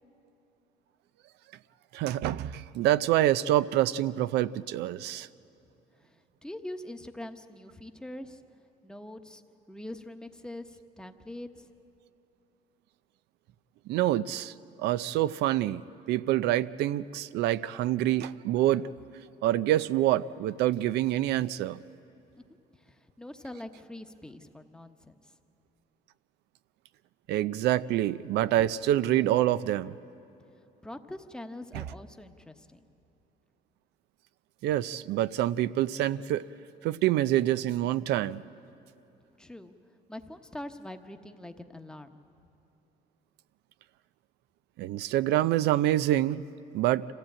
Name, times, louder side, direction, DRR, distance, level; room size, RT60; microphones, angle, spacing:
voice 1, 1.9-5.3 13.9-15.8 16.1-18.9 19.4-21.8 27.3-29.9 31.7-31.9 34.6-36.4 36.8-38.4 44.8-46.4 46.7-47.1, right 13 dB, 80° right, 16 dB, 0.5 m, -26 dB
voice 2, 6.0-8.4 8.8-9.4 9.7-11.7 22.8-25.3 30.8-32.9 39.4-39.7 40.1-42.2, left 1 dB, 5° left, 6 dB, 1.0 m, -43 dB
26.0 x 15.0 x 8.7 m, 2.9 s
cardioid pair, 110°, 17 cm